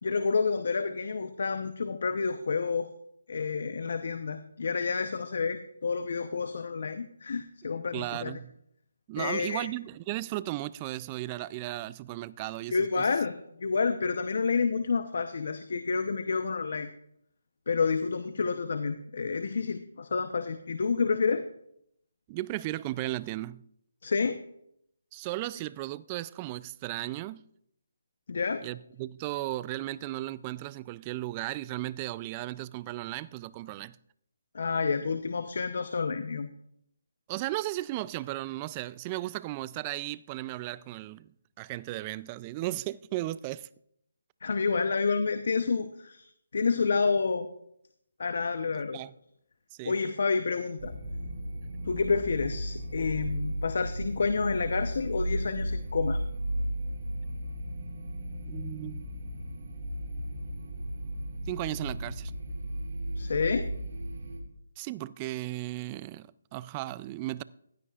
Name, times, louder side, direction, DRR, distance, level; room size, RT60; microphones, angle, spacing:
voice 1, 0.0-2.9 3.3-8.3 9.2-9.7 12.7-13.3 13.6-16.9 17.7-21.5 24.0-24.4 28.3-28.6 34.5-36.5 44.4-46.3 46.5-47.5 48.2-49.0 49.8-50.9 51.9-56.2 63.2-63.7, left 4 dB, 60° left, 0.8 m, -29 dB
voice 2, 7.9-8.6 9.1-13.1 22.3-23.7 25.1-27.4 28.6-34.0 37.3-41.3 41.6-43.7 48.7-49.1 49.7-50.0 58.5-59.1 61.5-62.3 64.8-67.4, right 17 dB, 20° right, 0.3 m, -35 dB
sound 1, 50.8-64.4, right 1 dB, 60° right, 3.9 m, -35 dB
15.5 x 12.5 x 2.4 m
figure-of-eight pair, 160°, 0 cm